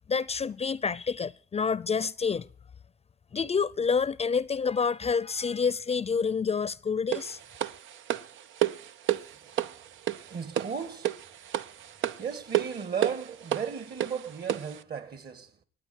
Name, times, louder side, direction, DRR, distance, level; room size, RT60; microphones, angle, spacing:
voice 1, 0.1-2.5 3.3-7.4, left 5 dB, 30° left, 0.6 m, -28 dB
sound 1, 7.1-14.8, right 12 dB, 75° right, 0.7 m, -32 dB
voice 2, 10.3-11.2 11.8-11.9 12.2-15.5, right 6 dB, 55° right, 2.3 m, -35 dB
24.0 x 9.2 x 4.6 m
cardioid pair, 90°, 20 cm